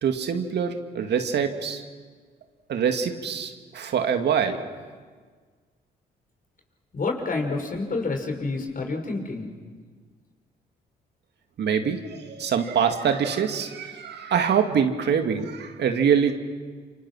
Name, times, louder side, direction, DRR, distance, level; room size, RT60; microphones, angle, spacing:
voice 1, 0.0-1.8 2.7-4.6 11.6-16.3, right 7 dB, 60° right, 6 dB, 2.1 m, -24 dB
voice 2, 6.9-9.5, left 3 dB, 45° left, 3 dB, 5.6 m, -28 dB
28.0 x 26.0 x 6.2 m, 1.5 s
hypercardioid pair, 50°, 19 cm